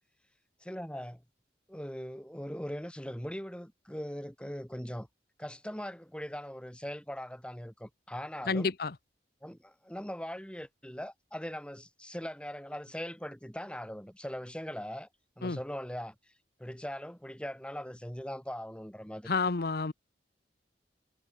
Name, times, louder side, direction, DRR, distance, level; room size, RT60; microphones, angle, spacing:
voice 1, 0.6-1.2 1.7-5.1 5.4-8.7 9.4-15.1 15.4-16.1 16.6-19.3, equal, 5° left, 4.8 m, -40 dB
voice 2, 8.4-9.0 15.4-15.6 19.3-19.9, left 4 dB, 55° left, 0.9 m, -30 dB
head